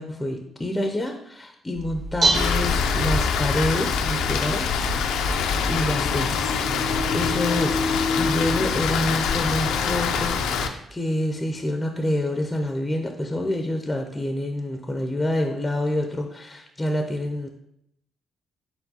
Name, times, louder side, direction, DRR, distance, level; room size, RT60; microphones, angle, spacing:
voice 1, 0.0-5.0 5.7-6.6 7.1-17.5, left 1 dB, 15° left, 4 dB, 0.4 m, -27 dB
Dishes pots and pans, 1.8-9.2, right 2 dB, 55° right, 1.3 m, -31 dB
Rain, 2.3-10.7, left 6 dB, 85° left, 0.3 m, -24 dB
4.4 x 4.1 x 2.8 m, 0.77 s
cardioid pair, 90°, 0 cm